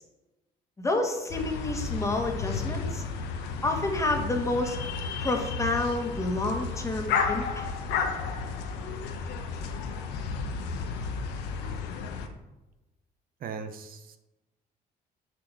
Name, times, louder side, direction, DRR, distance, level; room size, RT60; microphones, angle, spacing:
voice 1, 0.8-3.0 3.6-4.8 5.2-7.7, left 2 dB, 20° left, 3 dB, 1.8 m, -29 dB
sound 1, 1.3-12.3, left 5 dB, 90° left, 1.2 m, -32 dB
voice 2, 13.4-14.2, right 6 dB, 60° right, 8 dB, 0.9 m, -38 dB
6.9 x 6.0 x 7.0 m, 1.0 s
cardioid pair, 110°, 17 cm